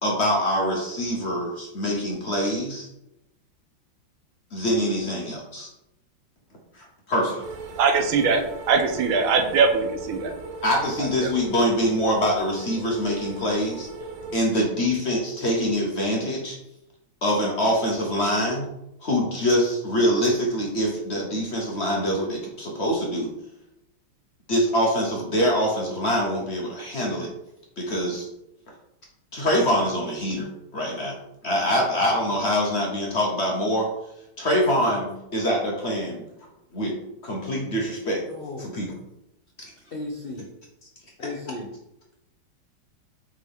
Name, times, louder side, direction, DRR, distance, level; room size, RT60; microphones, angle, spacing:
voice 1, 0.0-2.9 4.5-5.7 6.7-7.4 10.6-13.9 14.3-16.6 17.2-18.7 19.0-23.3 24.5-27.3 27.8-28.3 29.3-31.2 31.4-33.9 34.4-36.2 36.7-36.9 37.2-38.2 38.6-38.9, equal, 45° left, -1 dB, 1.0 m, -24 dB
sound 1, 7.4-14.4, right 3 dB, 70° right, 0.8 m, -38 dB
voice 2, 7.8-10.3 11.2-11.3, right 5 dB, 85° right, 5 dB, 1.7 m, -21 dB
voice 3, 38.2-38.8 39.9-40.5 41.2-41.7, left 3 dB, 80° left, -1 dB, 0.5 m, -35 dB
7.2 x 3.7 x 3.6 m, 0.86 s
omnidirectional pair, 2.2 m